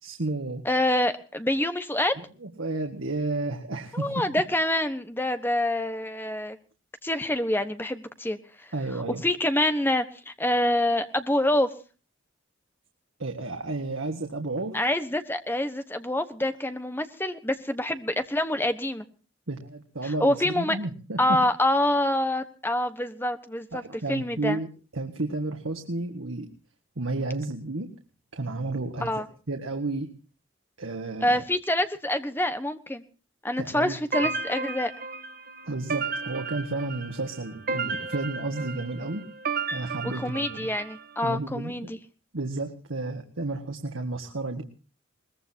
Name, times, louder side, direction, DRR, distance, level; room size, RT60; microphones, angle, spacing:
voice 1, 0.0-0.6 2.2-4.2 8.7-9.2 13.2-14.8 19.5-21.4 23.7-24.7 24.9-26.5 27.0-27.9 28.3-30.1 30.8-31.4 33.6-34.3 35.6-39.2 39.7-40.7 41.2-41.9 42.3-44.6, right 2 dB, 85° right, 4 dB, 1.7 m, -32 dB
voice 2, 0.6-2.1 3.9-6.6 7.0-8.4 9.2-11.7 14.7-19.0 20.0-20.8 21.2-23.8 24.1-24.6 29.0-29.3 31.2-33.0 33.4-34.9 40.0-42.0, left 1 dB, 10° left, 9 dB, 1.2 m, -26 dB
sound 1, 34.1-41.0, right 4 dB, 50° right, 1.3 m, -33 dB
21.5 x 20.5 x 2.8 m, 0.37 s
head